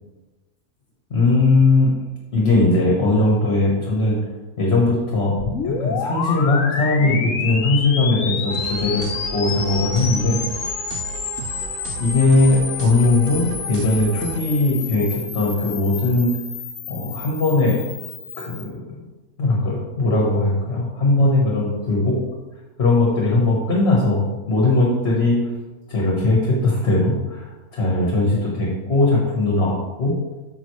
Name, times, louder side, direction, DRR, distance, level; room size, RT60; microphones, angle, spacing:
voice 1, 1.1-1.9 2.3-4.2 4.6-5.3 5.6-10.4 12.0-16.3 16.9-17.8 18.4-19.0 19.4-22.1 22.8-25.4 25.9-30.1, left 2 dB, 45° left, -3 dB, 1.5 m, -19 dB
sound 1, 5.4-18.7, left 5 dB, 65° left, 1.1 m, -29 dB
sound 2, 8.5-14.4, right 6 dB, 80° right, 0.5 m, -34 dB
9.0 x 6.5 x 3.2 m, 1.2 s
omnidirectional pair, 1.5 m